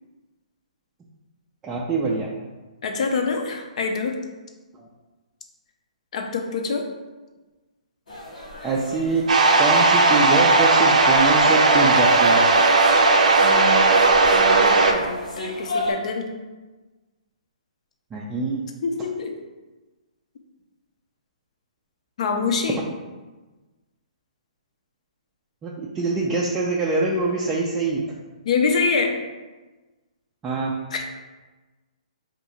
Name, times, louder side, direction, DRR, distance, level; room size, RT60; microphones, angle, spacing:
voice 1, 1.6-2.3 8.6-9.2 9.6-12.4 18.1-18.7 25.6-28.0 30.4-30.7, right 3 dB, 15° right, -4 dB, 0.3 m, -24 dB
voice 2, 2.8-4.2 6.1-6.9 13.4-13.9 14.3-16.3 18.8-19.4 22.2-22.8 28.4-29.1 30.9-31.0, left 4 dB, 60° left, 3 dB, 0.5 m, -25 dB
sound 1, 8.1-15.9, left 2 dB, 80° left, 1.2 m, -33 dB
sound 2, 9.3-14.9, right 3 dB, 75° right, 0.4 m, -16 dB
2.7 x 2.5 x 4.0 m, 1.2 s
hypercardioid pair, 145°, 4 cm